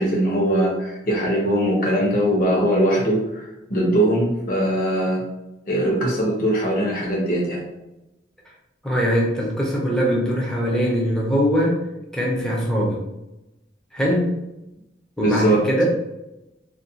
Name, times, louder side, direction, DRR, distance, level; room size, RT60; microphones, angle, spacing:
voice 1, 0.0-3.4 3.7-5.2 5.7-7.6 15.2-15.6, right 1 dB, 50° left, -3 dB, 0.8 m, -21 dB
voice 2, 8.8-11.8 12.1-13.0 13.9-14.4 15.2-15.8, equal, 5° left, -4 dB, 0.5 m, -21 dB
2.4 x 2.2 x 2.7 m, 0.93 s
head